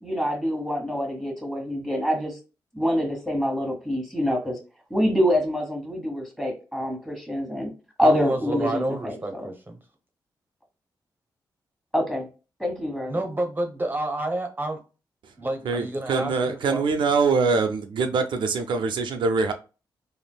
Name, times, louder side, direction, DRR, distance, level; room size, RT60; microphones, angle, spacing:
voice 1, 0.0-2.4 2.7-4.6 4.9-7.7 8.0-9.5 11.9-12.3 12.6-13.2, equal, ahead, 1.3 m, -26 dB
voice 2, 8.0-9.8 13.1-14.8 15.4-16.8, right 1 dB, 25° right, 0.7 m, -29 dB
voice 3, 15.6-19.5, right 4 dB, 75° right, 0.4 m, -23 dB
3.3 x 2.5 x 2.2 m
cardioid pair, 60°, 8 cm